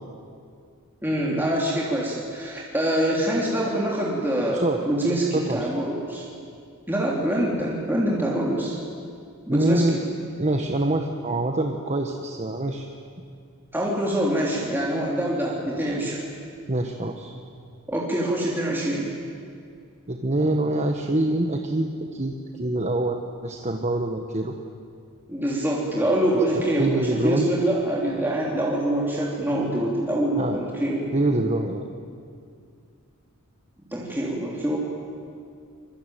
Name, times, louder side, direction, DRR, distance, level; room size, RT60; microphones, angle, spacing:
voice 1, 1.0-6.2 6.9-8.8 9.5-10.0 13.7-16.2 17.9-19.1 25.3-31.1 33.9-34.8, right 1 dB, 10° right, -4 dB, 3.3 m, -25 dB
voice 2, 4.5-4.8 5.3-5.7 9.5-10.0 10.4-12.9 16.7-17.3 20.1-24.5 26.8-27.5 30.4-30.6 31.1-31.8, right 1 dB, 30° right, 3 dB, 1.4 m, -25 dB
25.0 x 22.5 x 9.1 m, 2.3 s
head